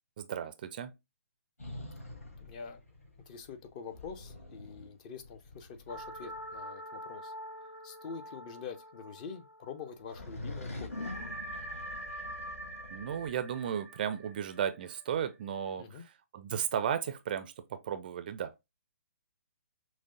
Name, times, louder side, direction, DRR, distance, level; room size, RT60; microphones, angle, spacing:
voice 1, 0.2-0.9 12.9-18.5, right 8 dB, 35° right, 0.4 m, -35 dB
sound 1, 1.6-6.6 10.0-13.4, left 2 dB, 65° left, 2.1 m, -45 dB
voice 2, 2.0-2.8 3.3-7.3 7.6-11.1 15.8-16.0, left 6 dB, 30° left, 0.6 m, -46 dB
sound 2, 5.9-9.9 10.2-10.3 10.9-15.6, right 1 dB, 90° left, 1.1 m, -45 dB
5.9 x 2.1 x 2.6 m
figure-of-eight pair, 130°, 8 cm